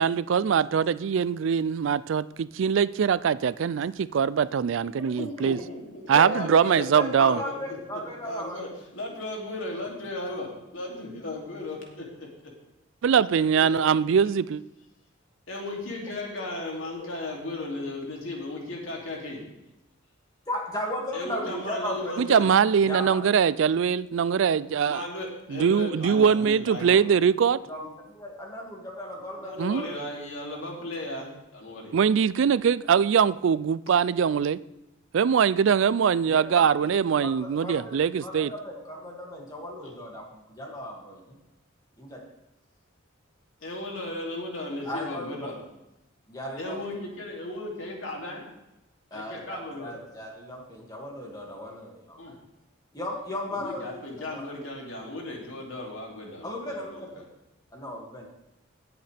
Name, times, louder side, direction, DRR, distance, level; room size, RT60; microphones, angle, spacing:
voice 1, 0.0-5.6 6.1-7.4 13.0-14.6 22.2-25.1 25.5-27.6 29.6-29.8 31.9-34.6 35.1-38.5, right 7 dB, 60° right, 0.3 m, -22 dB
voice 2, 5.2-11.8 13.3-13.8 15.5-19.4 21.1-22.5 24.8-27.0 29.4-31.9 39.8-39.9 43.6-45.6 46.6-48.4 49.1-50.0 52.2-52.3 53.5-57.2, left 1 dB, 65° left, 2.8 m, -36 dB
voice 3, 6.1-6.5 6.9-8.6 16.7-17.1 20.5-22.1 22.8-23.2 27.6-29.9 36.3-41.4 42.0-42.2 44.8-45.6 46.3-46.8 49.1-52.2 52.9-54.5 56.4-57.2 57.7-58.3, left 1 dB, 20° left, 2.2 m, -36 dB
17.5 x 8.0 x 3.4 m
head